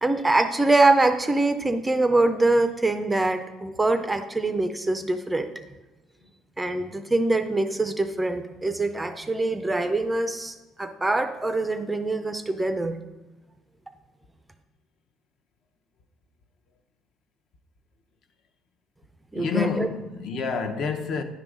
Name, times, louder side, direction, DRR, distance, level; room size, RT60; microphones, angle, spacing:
voice 1, 0.0-5.5 6.6-13.0 19.3-19.9, right 2 dB, 10° right, 0.4 m, -24 dB
voice 2, 19.3-21.2, left 6 dB, 50° left, 0.7 m, -28 dB
10.0 x 3.8 x 6.2 m
cardioid pair, 165°, 0 cm